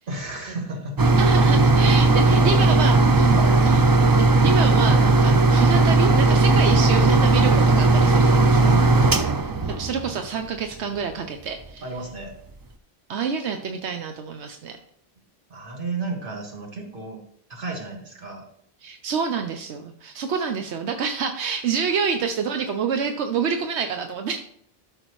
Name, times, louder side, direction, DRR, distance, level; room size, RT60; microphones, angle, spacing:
voice 1, 0.1-1.6 2.0-2.6 3.3-3.6 8.5-9.4 11.8-12.4 15.5-17.2 17.5-18.4, right 2 dB, 55° right, 0 dB, 2.0 m, -33 dB
sound 1, 1.0-10.5 11.1-11.2 11.6-11.7, right 3 dB, 30° right, 0.4 m, -17 dB
voice 2, 1.2-3.8 4.2-8.6 9.7-11.8 13.1-14.8 18.8-24.4, right 6 dB, 85° right, 5 dB, 1.0 m, -27 dB
13.0 x 6.3 x 3.1 m, 0.66 s
omnidirectional pair, 1.1 m